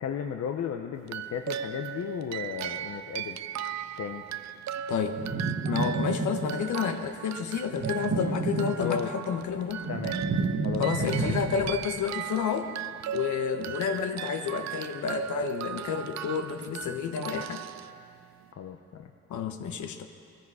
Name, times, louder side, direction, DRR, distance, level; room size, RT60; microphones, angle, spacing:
voice 1, 0.0-3.4 4.0-4.2 8.8-9.2 9.9-10.2 10.6-11.1 18.6-19.1, left 8 dB, 55° left, 5 dB, 0.9 m, -34 dB
sound 1, 1.0-18.5, right 9 dB, 65° right, 0.6 m, -37 dB
sound 2, 5.1-6.7 7.7-9.2 9.6-11.9, right 4 dB, 45° right, 1.5 m, -31 dB
voice 2, 5.7-9.9 10.8-12.7 13.1-17.6 19.3-20.1, left 7 dB, 75° left, 7 dB, 1.3 m, -30 dB
20.0 x 14.5 x 4.9 m, 2.4 s
cardioid pair, 90°, 30 cm